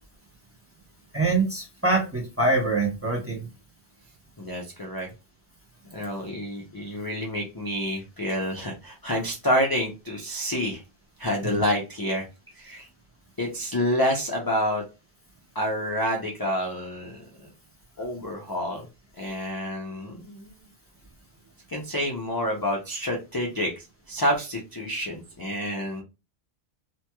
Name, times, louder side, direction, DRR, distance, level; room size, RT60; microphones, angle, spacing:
voice 1, 1.1-3.4 11.4-11.6, right 3 dB, 15° right, -2 dB, 0.8 m, -24 dB
voice 2, 4.4-5.1 5.9-10.8 11.2-12.3 12.5-12.9 13.4-14.8 15.5-17.5 18.0-18.9 19.2-20.7 21.7-26.0, equal, 30° left, -1 dB, 0.4 m, -28 dB
3.0 x 3.0 x 2.2 m, 0.28 s
omnidirectional pair, 1.1 m